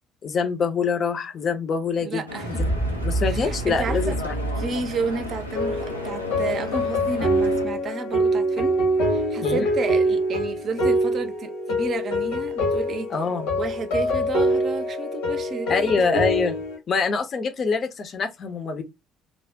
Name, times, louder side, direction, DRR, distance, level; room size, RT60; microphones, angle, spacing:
voice 1, 0.2-2.2 2.5-2.6 3.0-4.2 9.4-9.6 13.1-13.5 15.7-16.5 16.9-18.8, left 5 dB, 40° left, 0.6 m, -25 dB
voice 2, 2.0-2.6 3.3-4.2 4.6-8.8 9.1-13.1 13.6-16.2, right 4 dB, 45° right, 0.5 m, -31 dB
Stream / Boat Water vehicle, 2.3-7.7, left 1 dB, 90° left, 0.4 m, -35 dB
sound 1, 2.4-7.2, right 2 dB, 5° right, 0.6 m, -29 dB
sound 2, 5.5-16.8, equal, 70° left, 0.9 m, -24 dB
2.5 x 2.1 x 3.2 m
figure-of-eight pair, 50°, 0 cm